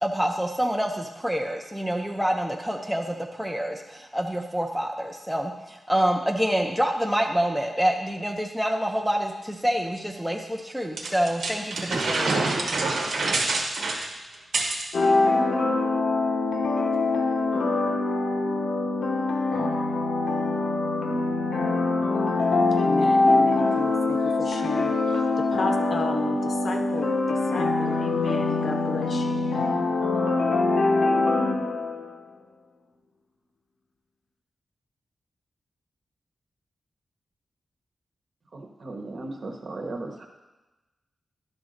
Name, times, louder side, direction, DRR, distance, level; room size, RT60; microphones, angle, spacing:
voice 1, 0.0-12.3, equal, ahead, 1 dB, 0.6 m, -27 dB
sound 1, 11.0-14.9, right 3 dB, 90° right, 1.2 m, -26 dB
sound 2, 14.9-32.2, left 3 dB, 90° left, 1.1 m, -24 dB
voice 2, 22.7-29.5, left 3 dB, 50° left, 4 dB, 0.8 m, -33 dB
voice 3, 38.5-40.3, right 2 dB, 50° right, 2 dB, 1.1 m, -36 dB
11.0 x 4.0 x 6.4 m, 1.1 s
wide cardioid pair, 155°, 0 cm